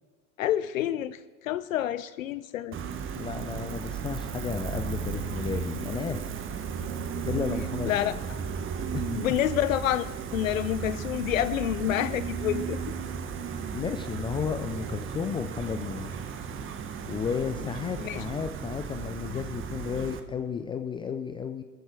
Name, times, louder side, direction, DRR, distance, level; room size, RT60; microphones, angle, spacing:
voice 1, 0.4-2.8 7.9-8.4 9.1-12.8 18.0-18.2, left 12 dB, 60° left, 15 dB, 0.7 m, -28 dB
Gull seagull, 2.7-20.2, right 6 dB, 25° right, 1.4 m, -35 dB
voice 2, 3.1-6.5 7.2-8.2 8.9-9.2 13.7-16.3 17.1-21.6, left 7 dB, 10° left, 8 dB, 0.4 m, -33 dB
24.0 x 14.5 x 3.4 m, 1.5 s
figure-of-eight pair, 80°, 45 cm